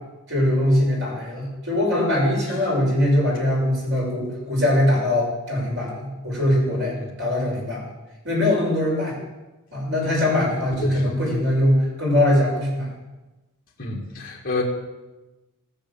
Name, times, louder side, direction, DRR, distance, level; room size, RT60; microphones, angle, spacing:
voice 1, 0.3-7.8 8.2-9.1 9.7-12.9, left 1 dB, 55° right, -3 dB, 6.2 m, -22 dB
voice 2, 10.8-11.2 13.8-14.6, left 3 dB, 40° left, -4 dB, 2.1 m, -28 dB
18.0 x 6.7 x 7.3 m, 1.1 s
head